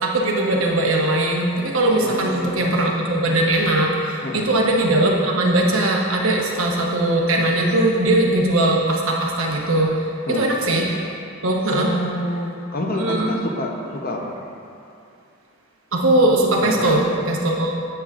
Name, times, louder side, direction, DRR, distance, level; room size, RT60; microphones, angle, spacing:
voice 1, 0.0-10.8 11.4-11.9 13.0-13.3 15.9-17.8, right 1 dB, 65° right, -1 dB, 1.0 m, -20 dB
voice 2, 2.0-2.5 4.2-4.5 10.3-10.5 11.7-14.3 16.6-17.1, left 1 dB, 40° left, 1 dB, 0.7 m, -27 dB
9.9 x 7.8 x 2.4 m, 2.6 s
head